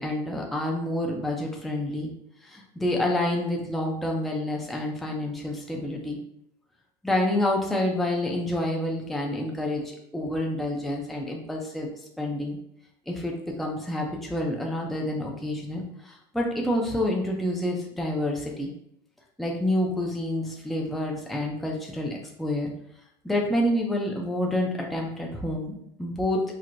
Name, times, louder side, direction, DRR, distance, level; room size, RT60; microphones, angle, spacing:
voice 1, 0.0-2.1 2.4-6.2 7.0-11.9 12.2-12.6 13.1-13.3 13.6-18.7 19.4-22.7 23.2-26.4, left 1 dB, ahead, -1 dB, 0.5 m, -28 dB
4.5 x 2.1 x 2.5 m, 0.75 s
supercardioid pair, 115°, 12 cm